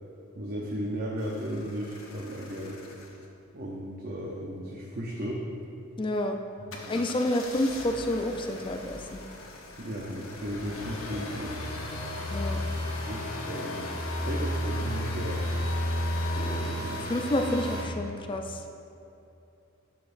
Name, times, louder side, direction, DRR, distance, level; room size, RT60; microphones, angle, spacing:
voice 1, 0.3-2.8 3.5-5.5 6.8-7.0 9.8-11.7 12.7-13.9 14.2-15.4 16.3-17.1, equal, 45° right, -2 dB, 0.7 m, -35 dB
sound 1, 1.2-3.2 6.7-17.8, left 1 dB, 70° left, 0.9 m, -34 dB
voice 2, 6.0-6.4 6.9-9.2 12.3-12.6 16.9-18.6, left 1 dB, 25° left, 5 dB, 0.4 m, -29 dB
10.5 x 6.8 x 2.6 m, 2.7 s
head